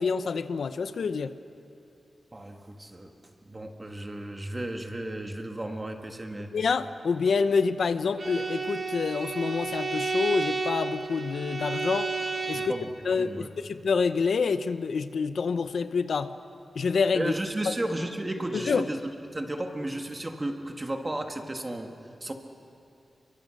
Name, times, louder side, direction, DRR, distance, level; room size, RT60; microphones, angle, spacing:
voice 1, 0.0-1.3 6.5-12.1 12.5-12.7 13.0-16.3 16.8-17.3 17.6-17.7 18.5-18.8, left 5 dB, 75° left, 11 dB, 0.7 m, -27 dB
voice 2, 2.3-3.1 3.5-6.5 12.5-12.9 13.2-13.5 17.1-19.0 19.3-21.9 22.2-22.3, right 1 dB, 20° right, 4 dB, 1.7 m, -33 dB
Bowed string instrument, 8.2-12.9, right 4 dB, 40° right, 1.5 m, -31 dB
29.5 x 23.5 x 6.5 m, 2.6 s
wide cardioid pair, 155°, 0 cm